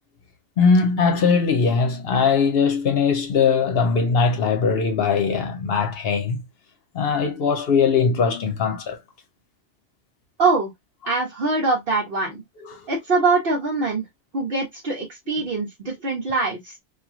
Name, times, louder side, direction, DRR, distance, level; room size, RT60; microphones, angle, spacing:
voice 1, 0.6-6.4 6.9-9.0 12.7-12.8, left 5 dB, 60° left, 0.8 m, -20 dB
voice 2, 10.4-10.7 11.1-12.4 12.9-14.0 14.3-16.8, right 3 dB, 55° right, 0.9 m, -23 dB
2.9 x 2.4 x 2.4 m
omnidirectional pair, 1.2 m